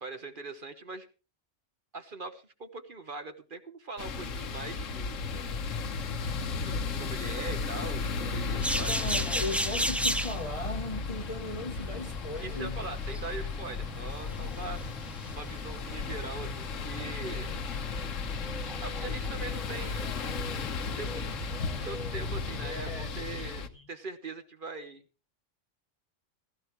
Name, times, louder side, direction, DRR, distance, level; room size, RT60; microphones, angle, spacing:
voice 1, 0.0-1.1 1.9-5.2 6.6-9.0 12.4-14.8 15.3-17.5 18.8-20.2 21.0-21.2 21.7-25.0, right 3 dB, 45° right, 1.2 m, -41 dB
sound 1, 4.0-23.7, left 5 dB, 85° left, 1.5 m, -35 dB
sound 2, 8.6-22.9, equal, ahead, 0.3 m, -37 dB
voice 2, 8.9-12.8 22.9-23.1 23.4-23.5 23.7-23.9, left 2 dB, 30° left, 1.0 m, -37 dB
15.5 x 14.5 x 3.1 m
omnidirectional pair, 1.3 m